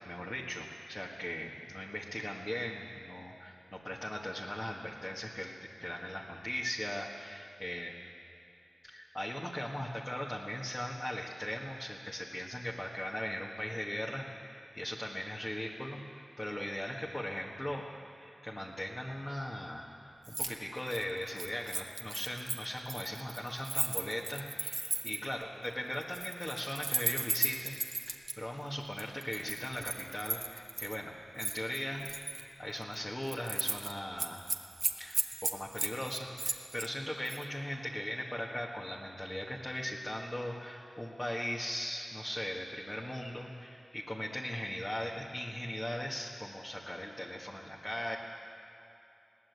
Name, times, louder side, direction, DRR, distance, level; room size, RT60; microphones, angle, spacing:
voice 1, 0.1-7.9 8.8-17.9 18.1-32.1 32.6-34.5 35.0-48.2, left 1 dB, 20° left, -2 dB, 1.7 m, -39 dB
Keys jangling, 20.2-20.5 20.8-25.3 26.0-28.3 29.0-31.0 31.4-32.4 32.8-33.0 33.3-33.9 34.2-36.9 37.2-37.4, right 2 dB, 50° right, 1.4 m, -35 dB
21.5 x 17.5 x 8.2 m, 2.8 s
wide cardioid pair, 70°, 0 cm